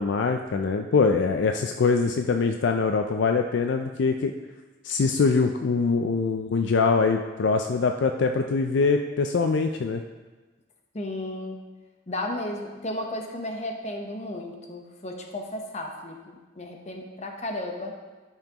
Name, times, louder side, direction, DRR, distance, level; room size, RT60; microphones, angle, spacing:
voice 1, 0.0-4.3 4.8-10.0, left 4 dB, 60° left, 5 dB, 0.4 m, -23 dB
voice 2, 10.9-11.6 12.1-17.9, left 1 dB, 35° left, 3 dB, 0.8 m, -34 dB
12.5 x 5.7 x 2.9 m, 1.3 s
head